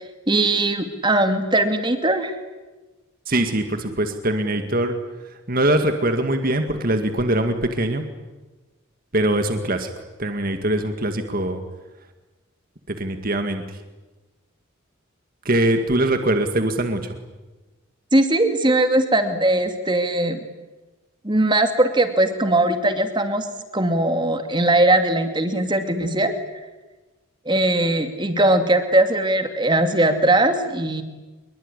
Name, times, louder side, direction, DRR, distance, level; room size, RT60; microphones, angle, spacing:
voice 1, 0.3-2.4 18.1-20.4 21.2-23.5 23.7-26.3 27.5-31.0, right 1 dB, 25° right, 7 dB, 2.5 m, -20 dB
voice 2, 3.3-5.0 5.5-8.0 9.1-9.9 10.2-11.6 12.9-13.6 15.5-17.1, right 1 dB, 45° right, 7 dB, 2.0 m, -22 dB
25.5 x 22.5 x 10.0 m, 1.2 s
head